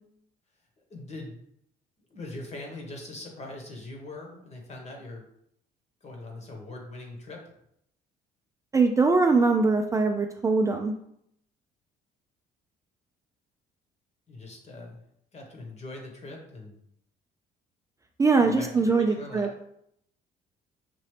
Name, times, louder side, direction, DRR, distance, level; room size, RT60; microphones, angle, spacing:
voice 1, 0.9-1.4 2.1-5.2 6.0-7.4 14.3-15.0 15.3-16.8 18.4-19.5, left 2 dB, 40° left, 1 dB, 1.3 m, -41 dB
voice 2, 8.7-10.9 18.2-19.5, right 4 dB, 20° right, 4 dB, 0.3 m, -22 dB
5.9 x 2.7 x 3.3 m, 0.73 s
cardioid pair, 110°, 17 cm